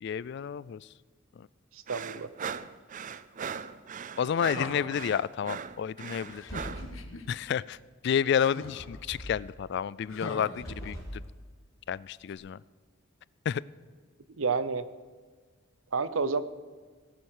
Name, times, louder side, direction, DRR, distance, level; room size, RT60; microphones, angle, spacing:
voice 1, 0.0-0.8 1.4-1.5 4.2-6.4 7.3-7.8 8.0-11.0 11.9-12.6 13.5-13.6, left 8 dB, 55° left, 21 dB, 0.3 m, -30 dB
voice 2, 1.7-2.3 14.4-14.9 15.9-16.4, right 4 dB, 80° right, 14 dB, 0.7 m, -29 dB
sound 1, 1.9-6.9, right 6 dB, 40° right, 0.4 m, -39 dB
sound 2, 4.3-5.1 6.3-7.3 8.4-9.0 10.1-11.3 12.3-12.4, left 3 dB, 80° left, 1.2 m, -41 dB
sound 3, 6.2-7.0 8.8-9.5 10.4-11.2, equal, 15° left, 4.0 m, -42 dB
17.5 x 8.9 x 6.5 m, 1.5 s
head